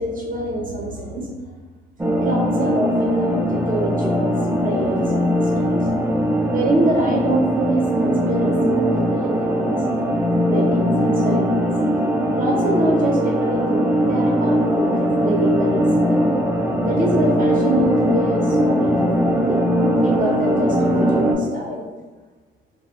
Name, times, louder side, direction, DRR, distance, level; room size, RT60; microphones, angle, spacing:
voice 1, 0.0-1.5 2.2-4.3 4.6-5.9 6.5-8.6 8.9-9.7 10.4-11.7 12.3-16.2 16.8-19.6 19.9-21.9, right 1 dB, 45° right, -1 dB, 0.7 m, -25 dB
sound 1, 2.0-21.3, equal, 10° right, 0.4 m, -20 dB
2.1 x 2.0 x 3.6 m, 1.3 s
cardioid pair, 90°, 20 cm